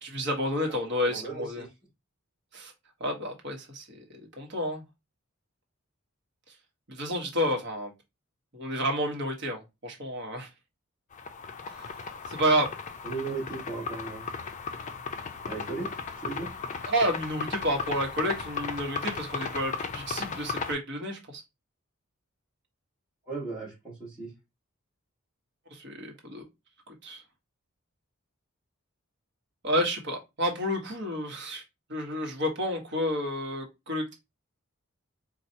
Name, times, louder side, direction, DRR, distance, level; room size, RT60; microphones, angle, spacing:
voice 1, 0.0-1.6 2.5-2.7 3.0-4.0 4.4-4.8 6.5-6.6 6.9-7.9 8.5-10.5 11.7-12.0 12.3-12.7 16.9-21.4 25.7-26.4 26.9-27.2 29.6-31.6 31.9-34.1, equal, 55° right, 1.1 m, -30 dB
voice 2, 1.0-1.7 13.0-14.3 15.4-16.5 23.2-24.3, right 4 dB, 5° right, 2.0 m, -37 dB
sound 1, 11.1-20.7, left 5 dB, 35° left, 0.4 m, -36 dB
4.4 x 2.3 x 2.7 m
head